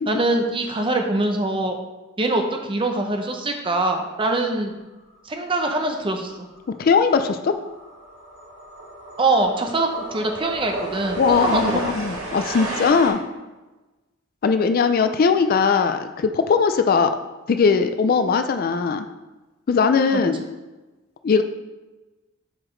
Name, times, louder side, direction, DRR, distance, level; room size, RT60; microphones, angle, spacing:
voice 1, 0.1-1.8 2.2-4.7 5.2-6.5 9.2-12.0 20.1-20.2, right 2 dB, 25° right, 4 dB, 0.6 m, -23 dB
sound 1, 6.3-6.5 6.8-13.1, right 2 dB, 80° right, 2.0 m, -32 dB
voice 2, 6.8-7.5 11.2-13.2 14.4-17.1 17.5-19.1 19.7-20.4 21.2-21.4, left 5 dB, 45° left, 9 dB, 0.3 m, -19 dB
7.2 x 4.9 x 3.2 m, 1.1 s
head